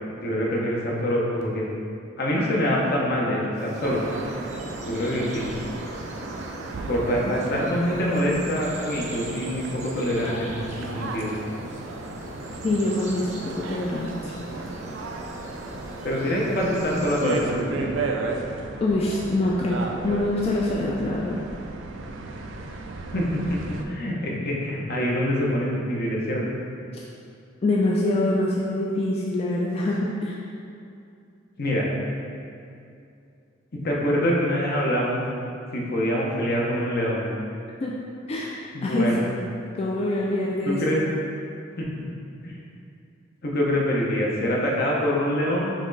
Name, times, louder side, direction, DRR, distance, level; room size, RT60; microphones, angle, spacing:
voice 1, 0.2-1.7 2.2-4.0 4.8-5.5 6.9-11.3 16.0-18.0 23.1-26.6 31.6-31.9 33.8-35.2 35.7-37.3 38.7-39.3 40.6-41.0 41.8-41.9 42.4-42.5 43.4-45.7, equal, 55° left, -3 dB, 0.7 m, -25 dB
sound 1, 3.6-17.4, right 1 dB, 40° right, 0.6 m, -39 dB
sound 2, 3.8-23.8, right 3 dB, 80° right, 0.4 m, -35 dB
voice 2, 12.6-14.3 18.8-21.4 27.6-30.4 37.8-37.9 38.3-39.5 39.8-41.0, left 2 dB, 35° left, -4 dB, 0.3 m, -25 dB
4.3 x 3.0 x 3.9 m, 2.5 s
head